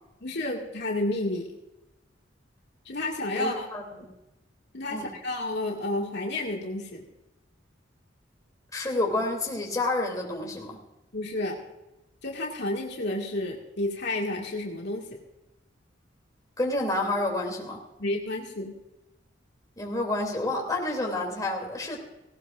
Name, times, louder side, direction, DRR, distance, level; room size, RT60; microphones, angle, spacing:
voice 1, 0.2-1.5 2.9-3.7 4.7-7.0 11.1-11.6 12.2-15.2 18.0-18.7, left 2 dB, 65° left, -1 dB, 2.2 m, -31 dB
voice 2, 3.4-4.1 4.9-5.1 8.7-10.8 16.6-17.8 19.8-22.1, left 2 dB, 20° left, -1 dB, 2.9 m, -29 dB
18.0 x 18.0 x 2.6 m, 0.97 s
head